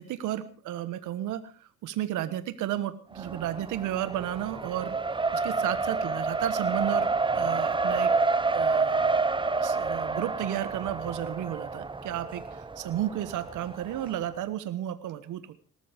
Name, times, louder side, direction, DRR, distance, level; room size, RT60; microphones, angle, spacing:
voice 1, 0.0-7.1 7.3-8.1 8.5-9.2 9.5-15.6, right 12 dB, 90° right, 12 dB, 1.3 m, -33 dB
Race car auto racing, 3.2-14.2, right 3 dB, 15° right, 0.9 m, -29 dB
19.5 x 13.0 x 5.1 m, 0.38 s
cardioid pair, 90°, 30 cm